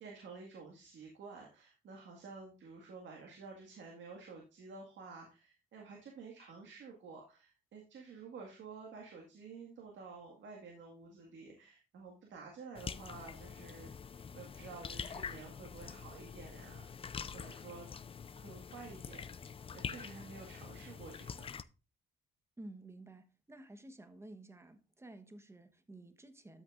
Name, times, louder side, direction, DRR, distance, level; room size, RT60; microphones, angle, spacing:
voice 1, 0.0-16.9 17.3-17.9 18.4-21.5, right 4 dB, 70° right, 1.9 m, -51 dB
sound 1, 12.7-21.6, left 6 dB, 30° left, 0.4 m, -46 dB
voice 2, 22.6-26.6, right 2 dB, 15° right, 1.1 m, -52 dB
13.0 x 6.1 x 2.5 m
cardioid pair, 90°, 20 cm